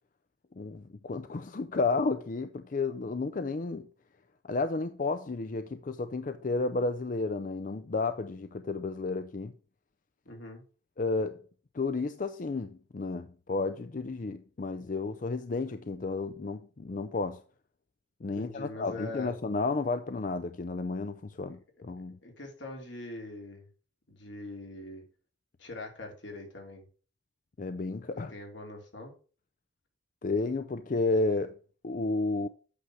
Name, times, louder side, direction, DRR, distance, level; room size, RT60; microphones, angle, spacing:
voice 1, 0.6-3.9 4.5-9.5 11.0-11.4 11.7-17.4 18.2-22.2 27.6-28.3 30.2-31.6 31.8-32.5, left 3 dB, 45° left, 0.5 m, -32 dB
voice 2, 10.2-10.6 18.4-19.3 22.2-23.6 24.1-25.0 25.6-26.8 28.3-29.1, left 2 dB, 75° left, 3.0 m, -42 dB
8.5 x 6.4 x 4.7 m
head